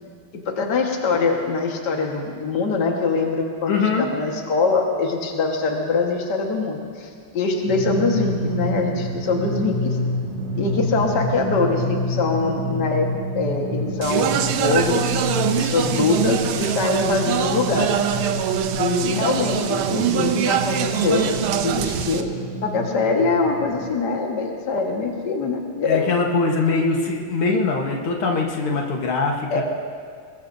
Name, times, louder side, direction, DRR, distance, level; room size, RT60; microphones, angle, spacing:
voice 1, 0.3-7.1 7.3-10.0 10.6-13.1 13.4-15.2 15.6-18.0 18.7-22.3 22.6-26.0 29.5-29.6, left 4 dB, 55° left, 1 dB, 2.1 m, -23 dB
voice 2, 3.7-4.1 25.8-29.6, left 4 dB, 80° left, 0 dB, 2.2 m, -22 dB
Drum, 7.7-23.8, equal, 55° right, 4.0 m, -28 dB
Speech, 14.0-22.2, right 9 dB, 85° right, 1.6 m, -23 dB
22.5 x 21.0 x 2.7 m, 2.1 s
omnidirectional pair, 2.3 m